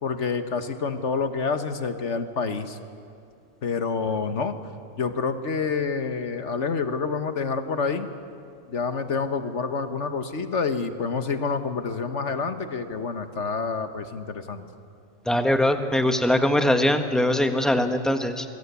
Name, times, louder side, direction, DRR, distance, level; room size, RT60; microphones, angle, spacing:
voice 1, 0.0-2.8 3.6-4.6 5.0-8.1 8.7-14.7, left 5 dB, 60° left, 9 dB, 1.6 m, -28 dB
voice 2, 15.3-18.4, left 1 dB, ahead, 6 dB, 1.4 m, -22 dB
26.5 x 22.0 x 8.4 m, 2.4 s
omnidirectional pair, 1.4 m